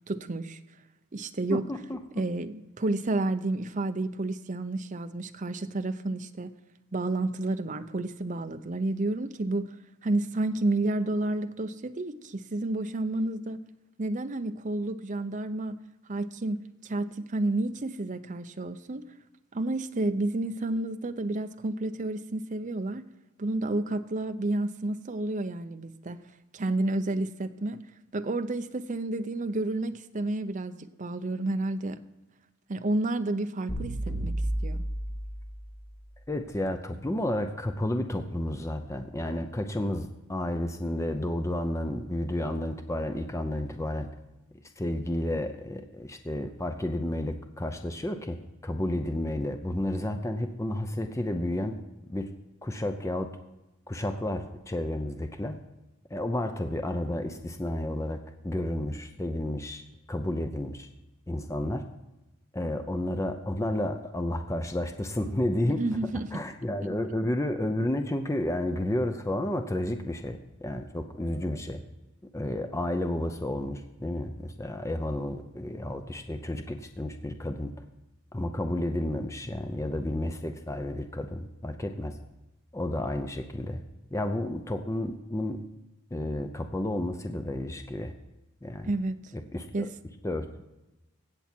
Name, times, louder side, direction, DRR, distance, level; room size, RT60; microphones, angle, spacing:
voice 1, 0.1-0.6 1.1-1.6 2.2-6.5 6.9-9.7 10.0-13.6 14.0-15.8 16.1-16.6 16.8-19.1 19.5-23.1 23.4-26.2 26.5-27.8 28.1-32.0 32.7-34.4 34.6-34.8 65.7-66.3 88.8-89.2 89.7-89.9, right 2 dB, 35° right, 10 dB, 0.6 m, -30 dB
voice 2, 1.5-2.0 36.3-44.1 44.8-51.8 52.1-52.3 52.6-53.3 53.9-55.6 56.1-59.8 60.1-60.9 61.3-61.8 62.5-65.9 66.3-71.8 72.3-77.7 78.3-82.2 82.7-83.8 84.1-85.6 86.1-88.1 88.6-88.9 89.5-89.9 90.2-90.6, left 1 dB, 15° left, 6 dB, 0.6 m, -31 dB
sound 1, 33.7-35.8, right 1 dB, 55° left, 4.2 m, -32 dB
17.0 x 7.1 x 4.4 m, 1.0 s
head